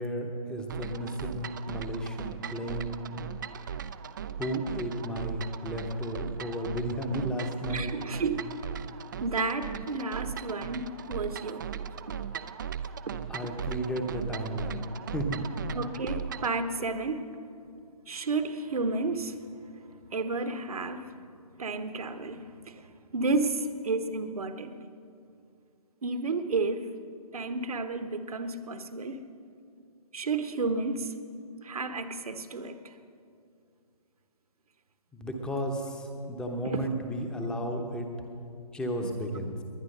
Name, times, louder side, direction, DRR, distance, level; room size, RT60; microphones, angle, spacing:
voice 1, 0.0-3.0 4.4-7.9 13.3-14.9 15.1-15.4 35.1-38.1 38.7-39.6, equal, 5° left, 0.9 m, -33 dB
sound 1, 0.7-16.6, right 8 dB, 30° right, 0.4 m, -38 dB
voice 2, 7.7-8.5 9.2-12.2 15.7-17.3 18.1-19.4 20.1-21.2 21.6-22.5 23.1-24.8 26.0-26.9 27.3-29.3 30.1-31.2 31.6-32.8 36.6-36.8 39.0-39.1, right 3 dB, 65° right, 1.2 m, -31 dB
20.0 x 10.5 x 6.6 m
figure-of-eight pair, 150°, 20 cm